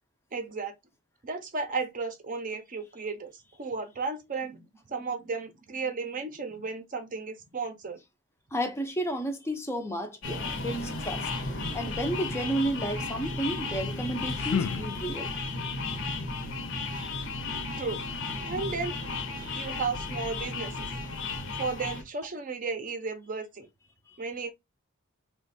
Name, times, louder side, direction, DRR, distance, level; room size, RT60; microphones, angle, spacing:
voice 1, 0.3-0.7 1.2-8.0 17.8-18.0 18.5-19.0 19.3-20.9 21.6-23.7 24.2-24.5, right 4 dB, 40° right, 0.6 m, -34 dB
voice 2, 8.5-11.3 11.7-15.3 21.3-21.4 24.1-24.2, right 1 dB, 10° left, 0.5 m, -32 dB
sound 1, 10.2-22.0, left 3 dB, 60° left, 0.8 m, -34 dB
sound 2, 13.9-15.6, left 7 dB, 75° left, 0.4 m, -34 dB
3.1 x 2.2 x 4.0 m
head